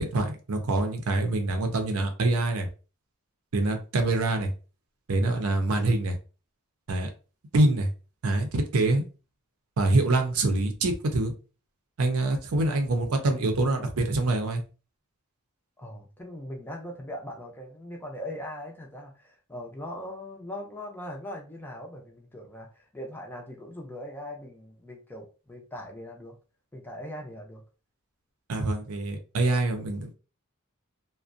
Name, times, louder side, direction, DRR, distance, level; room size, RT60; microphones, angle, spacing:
voice 1, 0.0-2.7 3.5-4.5 5.1-6.2 6.9-7.1 7.5-7.9 8.2-9.1 9.8-11.3 12.0-14.6 28.5-30.1, right 2 dB, 80° right, 0.5 m, -25 dB
voice 2, 15.8-26.3 26.7-27.6, left 1 dB, 10° left, 0.5 m, -40 dB
2.4 x 2.1 x 2.5 m
head